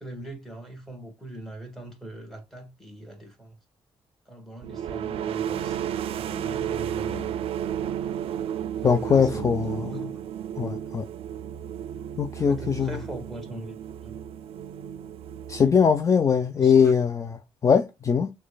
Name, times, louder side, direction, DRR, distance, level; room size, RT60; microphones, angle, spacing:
voice 1, 0.0-3.6 4.3-7.5 8.7-9.9 12.3-13.8 14.0-14.2 15.5-15.7 16.5-16.9, right 1 dB, 5° left, 1.4 m, -41 dB
sound 1, 4.6-16.2, right 9 dB, 75° right, 0.4 m, -33 dB
voice 2, 8.8-10.0 10.6-11.1 12.2-13.0 15.5-18.3, left 6 dB, 30° left, 0.3 m, -21 dB
6.2 x 2.2 x 2.2 m
cardioid pair, 115°, 10 cm